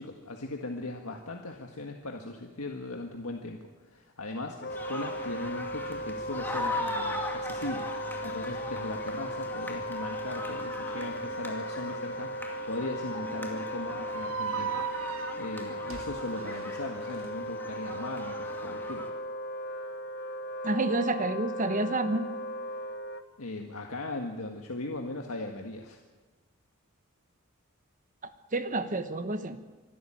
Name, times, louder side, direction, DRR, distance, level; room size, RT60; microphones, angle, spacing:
voice 1, 0.0-19.0 23.4-26.0, left 2 dB, 80° left, 2 dB, 1.7 m, -38 dB
Wind instrument woodwind instrument, 4.6-23.2, equal, 50° left, 1.2 m, -37 dB
sound 1, 4.7-19.1, left 1 dB, 10° left, 2.2 m, -40 dB
sound 2, 14.1-17.3, right 8 dB, 65° right, 0.9 m, -37 dB
voice 2, 20.6-22.3 28.5-29.6, right 2 dB, 35° right, 10 dB, 1.1 m, -29 dB
25.0 x 13.0 x 9.0 m, 1.3 s
head